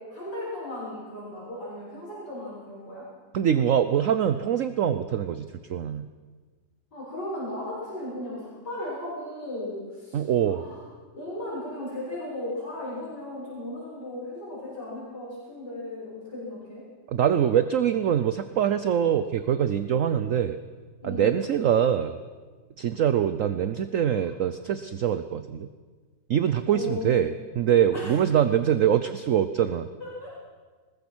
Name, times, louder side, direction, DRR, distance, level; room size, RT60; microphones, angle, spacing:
voice 1, 0.1-3.0 6.9-10.9 11.1-16.8 21.0-21.4 26.7-27.1 27.9-28.1 30.0-30.3, left 1 dB, 65° left, -7 dB, 7.4 m, -36 dB
voice 2, 3.3-6.1 10.1-10.6 17.1-20.6 21.0-22.2 22.8-25.7 26.3-29.9, right 9 dB, 60° right, 11 dB, 0.9 m, -24 dB
22.0 x 20.5 x 6.2 m, 1.4 s
omnidirectional pair, 2.0 m